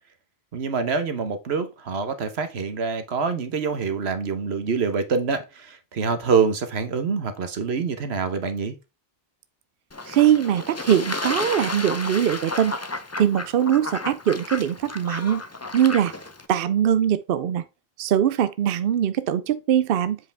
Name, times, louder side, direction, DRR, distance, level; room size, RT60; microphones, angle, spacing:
voice 1, 0.5-8.8, right 5 dB, 85° right, 1.3 m, -25 dB
Fowl / Bird / Water, 9.9-16.5, left 2 dB, 20° left, 0.6 m, -32 dB
voice 2, 10.1-12.8 13.2-15.4 15.7-16.1 16.5-17.6 18.0-20.2, right 10 dB, 65° right, 0.7 m, -21 dB
7.6 x 4.9 x 3.4 m
omnidirectional pair, 1.0 m